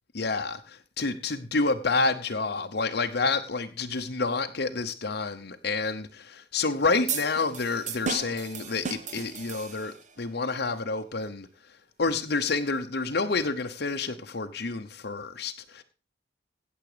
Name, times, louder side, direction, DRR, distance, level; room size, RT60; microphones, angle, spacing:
voice 1, 0.1-11.5 12.0-15.8, left 3 dB, 60° left, 0.9 m, -29 dB
sound 1, 7.1-10.1, right 6 dB, 40° right, 1.2 m, -35 dB
16.5 x 7.3 x 5.0 m
head